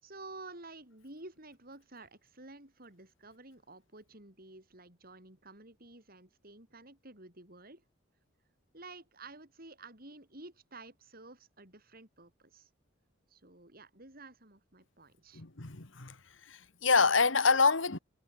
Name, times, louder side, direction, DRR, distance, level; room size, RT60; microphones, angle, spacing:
voice 1, 0.0-7.8 8.7-12.7 13.3-15.4, right 2 dB, 45° right, 6.3 m, -51 dB
voice 2, 15.3-16.2 16.5-18.0, left 4 dB, 65° left, 1.9 m, -26 dB
head